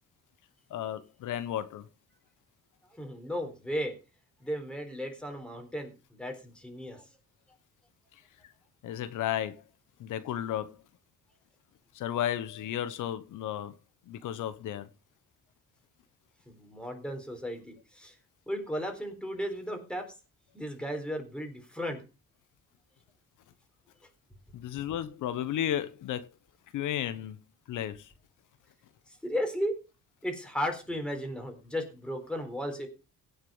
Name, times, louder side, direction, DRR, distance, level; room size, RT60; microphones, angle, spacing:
voice 1, 0.7-1.9 8.8-9.6 10.0-10.8 11.9-13.7 14.1-14.9 24.5-26.3 26.7-27.4 27.7-28.1, left 11 dB, 85° left, 1.1 m, -33 dB
voice 2, 3.0-3.9 4.4-7.1 16.5-18.1 18.5-20.0 20.5-22.0 29.1-29.7 30.2-32.9, equal, 5° left, 3.9 m, -35 dB
16.5 x 6.7 x 5.6 m
cardioid pair, 140°, 30 cm